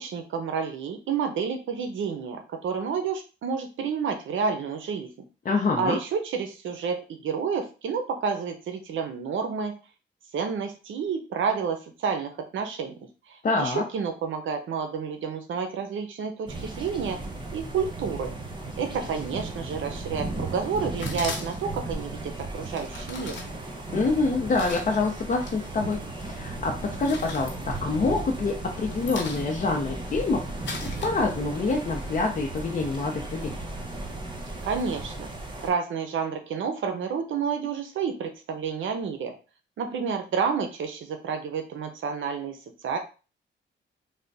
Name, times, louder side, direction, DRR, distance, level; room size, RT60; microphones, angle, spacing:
voice 1, 0.0-5.1 5.8-9.7 10.3-12.9 13.3-17.2 17.5-18.3 18.8-23.4 34.6-35.3 35.6-39.4 39.8-42.6 42.8-43.0, right 6 dB, 80° right, 5 dB, 0.6 m, -30 dB
voice 2, 5.4-6.0 13.4-13.8 23.9-26.7 27.0-33.6, left 3 dB, 40° left, -1 dB, 0.6 m, -26 dB
sound 1, 16.5-35.7, right 2 dB, 25° right, 0.8 m, -36 dB
sound 2, 21.0-21.8 22.7-25.6 25.9-26.5 26.8-28.3 28.6-31.6, left 4 dB, 70° left, 0.9 m, -40 dB
3.4 x 2.2 x 3.9 m, 0.33 s
cardioid pair, 105°, 20 cm